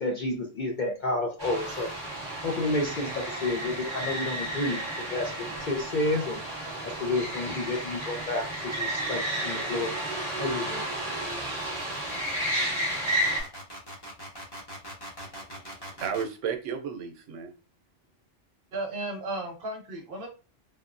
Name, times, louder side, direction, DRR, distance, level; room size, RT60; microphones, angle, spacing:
voice 1, 0.0-1.9 2.4-6.4 6.8-10.0 10.4-10.9, left 2 dB, 55° left, 1 dB, 0.5 m, -30 dB
sound 1, 1.4-13.4, right 1 dB, 25° right, 1.2 m, -32 dB
sound 2, 10.0-16.3, equal, 25° left, 0.8 m, -44 dB
voice 2, 15.2-17.5, right 7 dB, 85° right, 4 dB, 1.0 m, -34 dB
voice 3, 18.7-20.3, right 2 dB, 55° right, 1 dB, 0.9 m, -34 dB
3.4 x 2.1 x 2.4 m, 0.33 s
omnidirectional pair, 1.2 m